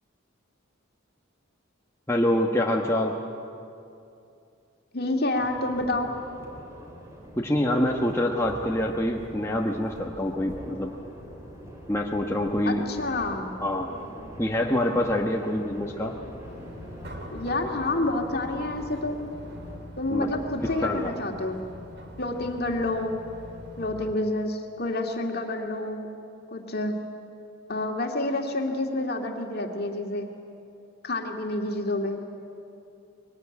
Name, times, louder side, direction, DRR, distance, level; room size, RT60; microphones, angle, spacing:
voice 1, 2.1-3.2 7.3-10.9 11.9-12.8 13.6-13.9 14.4-16.1 20.1-20.3 20.6-21.1, left 1 dB, 15° left, -1 dB, 1.2 m, -26 dB
voice 2, 4.9-6.1 12.7-13.5 17.3-19.2 20.0-21.6 22.2-23.2 23.8-26.1 26.5-26.9 27.7-30.3 31.0-32.2, left 2 dB, 50° left, 2 dB, 2.2 m, -28 dB
sound 1, 5.4-19.8, equal, 15° right, 3.4 m, -44 dB
sound 2, 16.4-24.1, equal, 55° right, 2.4 m, -43 dB
22.5 x 19.5 x 9.8 m, 2.6 s
head